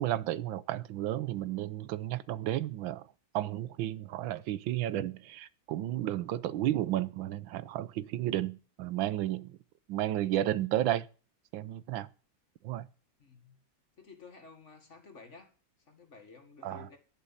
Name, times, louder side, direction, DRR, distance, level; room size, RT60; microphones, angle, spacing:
voice 1, 0.0-3.1 3.3-9.6 9.9-11.1 11.5-12.1 12.6-12.9 16.6-16.9, right 13 dB, 85° right, 1.5 m, -32 dB
voice 2, 13.2-13.6 14.0-15.5 15.9-17.0, left 4 dB, 40° left, 2.0 m, -53 dB
10.5 x 7.6 x 7.1 m
omnidirectional pair, 2.1 m